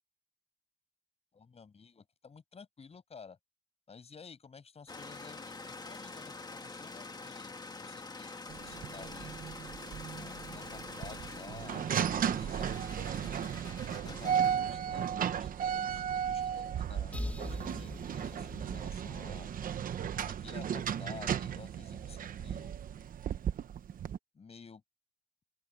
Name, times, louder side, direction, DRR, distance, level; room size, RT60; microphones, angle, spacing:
voice 1, 1.3-3.4 3.9-9.4 10.1-13.5 13.9-19.5 20.1-22.7 24.3-24.8, left 5 dB, 45° left, 7.1 m, -52 dB
sound 1, 4.9-14.6, left 3 dB, 30° left, 2.0 m, -46 dB
sound 2, 8.5-24.2, right 9 dB, 85° right, 0.9 m, -35 dB
sound 3, 17.1-20.8, left 1 dB, 10° left, 1.4 m, -43 dB
open air
wide cardioid pair, 115°, 14 cm